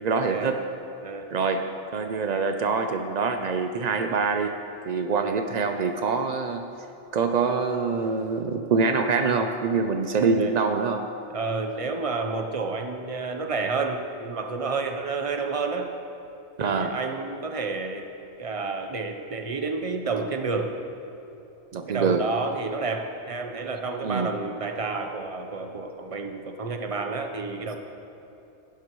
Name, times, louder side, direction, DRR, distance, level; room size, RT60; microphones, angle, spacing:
voice 1, 0.0-0.6 1.3-1.7 1.9-4.6 4.8-6.6 7.1-11.0 16.6-17.0 21.7-22.2 24.0-24.3, right 4 dB, 70° right, 6 dB, 0.4 m, -25 dB
voice 2, 11.3-15.9 16.6-18.1 18.4-20.7 21.9-27.8, right 4 dB, 35° right, 5 dB, 0.7 m, -30 dB
17.5 x 11.5 x 3.1 m, 2.9 s
omnidirectional pair, 1.4 m